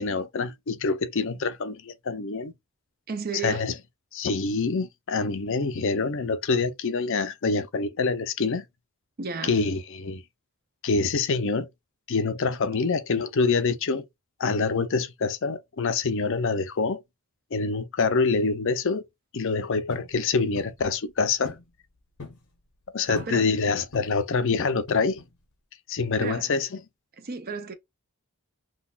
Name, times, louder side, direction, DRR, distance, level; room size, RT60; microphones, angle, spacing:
voice 1, 0.0-2.5 3.4-3.7 4.1-8.6 9.4-10.2 10.8-11.7 12.1-14.0 14.4-17.0 17.5-19.0 19.3-21.6 22.9-25.2 25.9-26.8, left 4 dB, 60° left, 0.5 m, -26 dB
voice 2, 3.1-3.7 9.2-9.6 23.1-23.5 26.2-26.5 27.2-27.7, right 4 dB, 40° right, 0.6 m, -33 dB
sound 1, 19.9-20.1 20.6-20.8 21.4-21.7 22.0-22.4 23.1-23.4 23.9-24.3 24.9-25.4, left 3 dB, 80° left, 0.8 m, -42 dB
3.9 x 2.3 x 2.4 m
head